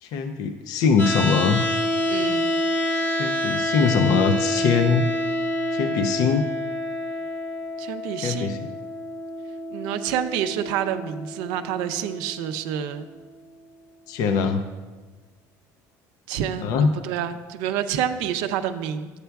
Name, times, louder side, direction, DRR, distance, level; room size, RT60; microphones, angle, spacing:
voice 1, 0.0-1.6 3.2-5.0 5.7-6.4 8.2-8.7 14.1-14.6 16.6-16.9, left 5 dB, 65° left, 8 dB, 0.5 m, -22 dB
sound 1, 1.0-13.0, left 1 dB, 40° left, 1.0 m, -28 dB
voice 2, 2.1-2.5 7.8-8.7 9.7-13.1 16.3-19.1, right 9 dB, 80° right, 9 dB, 0.5 m, -28 dB
11.0 x 8.0 x 2.3 m, 1.3 s
cardioid pair, 130°, 7 cm